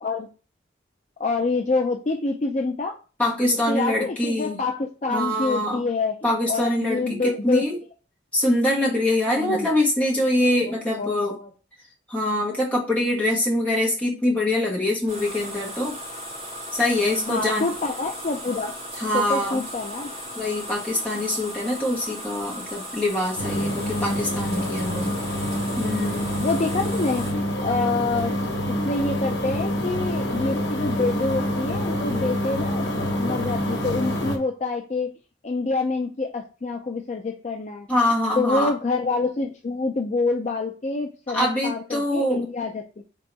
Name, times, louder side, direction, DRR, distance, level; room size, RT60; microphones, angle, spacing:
voice 1, 1.2-2.9 3.7-7.7 9.3-9.7 10.6-11.5 17.3-18.8 19.1-20.2 23.6-24.1 26.4-28.4 28.7-32.9 33.2-35.1 35.4-37.9 38.4-43.0, left 3 dB, 40° left, 3 dB, 0.4 m, -27 dB
voice 2, 3.2-4.6 5.1-5.8 6.2-7.8 8.3-11.3 12.1-16.0 16.7-17.7 19.0-19.7 20.4-25.1 25.8-26.3 29.8-29.9 37.9-38.7 41.3-42.4, left 1 dB, 10° left, -4 dB, 1.3 m, -24 dB
sound 1, 15.1-27.3, equal, 35° right, 1.9 m, -37 dB
sound 2, 23.4-34.4, equal, 80° left, 1.1 m, -26 dB
4.0 x 3.7 x 3.3 m, 0.35 s
head